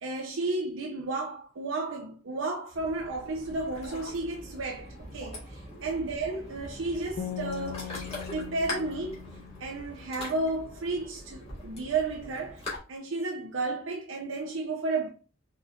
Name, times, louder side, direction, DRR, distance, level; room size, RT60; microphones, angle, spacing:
voice 1, 0.0-7.9 8.3-9.2 9.6-15.1, right 3 dB, 90° right, 0.6 m, -33 dB
Ocean, 2.7-12.8, left 1 dB, 30° left, 1.7 m, -42 dB
sound 1, 7.2-10.4, left 11 dB, 60° left, 0.4 m, -40 dB
4.1 x 3.5 x 2.4 m
head